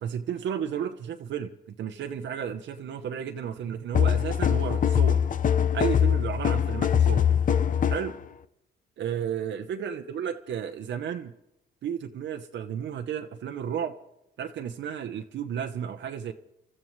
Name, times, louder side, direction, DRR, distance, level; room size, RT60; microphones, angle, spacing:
voice 1, 0.0-1.5 1.8-5.2 5.7-7.3 7.9-8.1 9.0-11.3 11.8-13.9 14.4-16.3, right 8 dB, 65° right, 6 dB, 0.9 m, -33 dB
sound 1, 3.9-8.1, left 8 dB, 40° left, 0.6 m, -23 dB
28.0 x 13.5 x 3.2 m, 0.85 s
cardioid pair, 90°, 20 cm